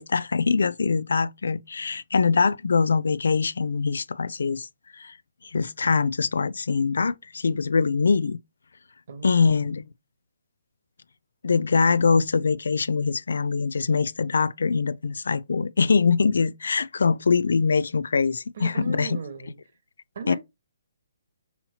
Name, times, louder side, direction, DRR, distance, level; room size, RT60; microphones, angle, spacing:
voice 1, 0.0-5.2 5.4-8.4 9.2-9.9 11.4-19.2 20.3-20.4, left 5 dB, 75° left, 0.3 m, -23 dB
voice 2, 9.1-9.6 18.6-19.5 20.1-20.4, right 5 dB, 55° right, 1.2 m, -37 dB
5.5 x 2.8 x 2.7 m
hypercardioid pair, 155°, 0 cm